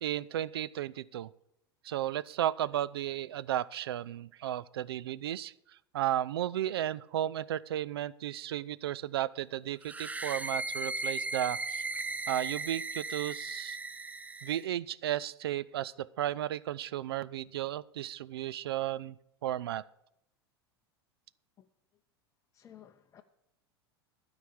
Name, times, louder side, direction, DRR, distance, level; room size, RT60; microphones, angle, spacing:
voice 1, 0.0-1.3 1.8-5.5 5.9-11.8 12.3-13.8 14.4-19.2 19.4-19.8, right 12 dB, 70° right, 0.4 m, -34 dB
sound 1, 9.8-14.7, right 3 dB, 10° right, 0.5 m, -37 dB
voice 2, 22.5-23.2, left 10 dB, 25° left, 0.7 m, -55 dB
12.5 x 4.9 x 8.5 m
figure-of-eight pair, 85°, 13 cm